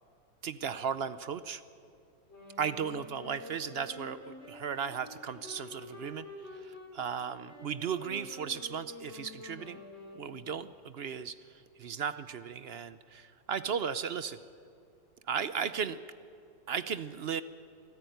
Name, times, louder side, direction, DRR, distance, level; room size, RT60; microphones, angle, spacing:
voice 1, 0.4-1.6 2.6-6.3 6.5-9.8 10.2-11.4 11.8-14.4 15.3-16.0 16.7-17.4, right 7 dB, 55° right, 13 dB, 0.7 m, -35 dB
sound 1, 2.3-10.7, left 2 dB, 45° left, 4.1 m, -48 dB
24.0 x 14.5 x 9.3 m, 2.5 s
omnidirectional pair, 1.6 m